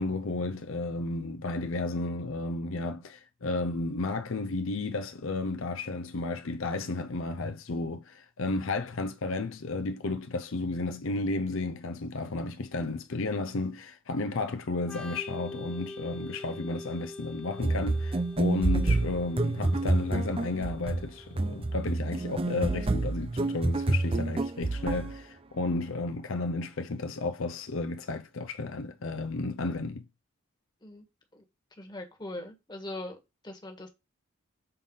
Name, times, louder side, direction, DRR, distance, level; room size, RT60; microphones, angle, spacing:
voice 1, 0.0-30.0, left 3 dB, 65° left, 0.6 m, -33 dB
Organ, 14.8-22.3, left 2 dB, 5° left, 1.0 m, -45 dB
sound 1, 17.6-25.2, right 2 dB, 25° right, 0.5 m, -28 dB
voice 2, 31.8-33.2 33.4-33.9, left 1 dB, 20° left, 1.5 m, -40 dB
6.7 x 4.1 x 5.4 m
head